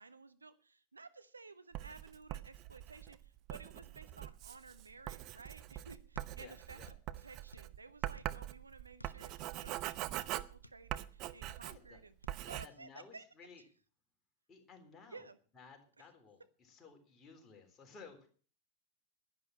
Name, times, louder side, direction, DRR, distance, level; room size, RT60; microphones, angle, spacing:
voice 1, 0.0-6.8 7.2-12.1 12.4-13.2 15.1-15.4, right 4 dB, 80° right, 12 dB, 0.8 m, -55 dB
Writing, 1.7-12.0 12.3-12.7, right 15 dB, 40° right, 0.7 m, -43 dB
sound 1, 6.1-7.1 7.3-8.5 9.0-10.9 11.3-11.9 12.2-12.4, left 1 dB, 85° left, 0.5 m, -60 dB
voice 2, 6.4-6.9 11.7-12.0 12.6-13.6 14.5-15.3 15.5-18.3, left 5 dB, 20° left, 2 dB, 3.8 m, -57 dB
11.0 x 10.5 x 7.2 m, 0.42 s
figure-of-eight pair, 90°, 0 cm